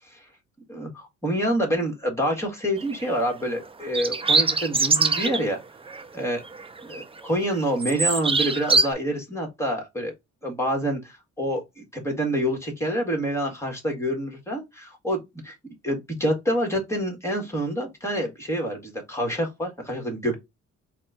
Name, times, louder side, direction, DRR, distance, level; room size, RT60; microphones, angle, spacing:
voice 1, 0.7-5.6 6.1-6.4 6.9-10.1 10.4-15.5 15.8-20.3, equal, 10° left, 1.7 m, -27 dB
sound 1, 2.8-3.0 3.8-5.4 5.9-6.0 6.4-7.2 7.5-8.9, right 4 dB, 20° right, 0.5 m, -23 dB
4.2 x 2.4 x 4.1 m
cardioid pair, 90°, 30 cm